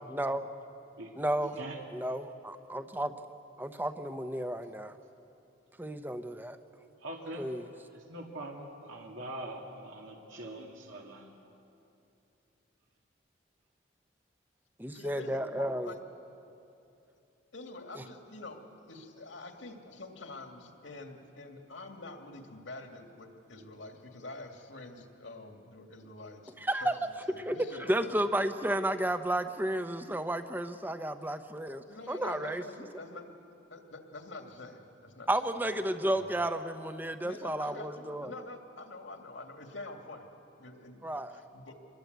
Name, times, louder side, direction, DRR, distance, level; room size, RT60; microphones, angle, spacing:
voice 1, 0.1-0.4 1.2-1.6 1.9-3.1 3.6-4.9 5.8-6.6 7.4-7.7 14.8-15.9 17.9-18.0 26.6-27.1 27.3-32.6 35.3-38.3 41.0-41.3, right 1 dB, 10° right, 9 dB, 0.8 m, -32 dB
voice 2, 7.0-7.4 7.9-11.3, right 1 dB, 85° right, 0 dB, 2.3 m, -43 dB
voice 3, 14.9-16.0 17.5-28.2 31.8-33.4 33.7-35.3 35.7-35.9 36.1-36.4 37.2-40.3 40.6-41.7, left 2 dB, 75° left, 4 dB, 2.4 m, -46 dB
26.5 x 21.5 x 8.1 m, 2.8 s
head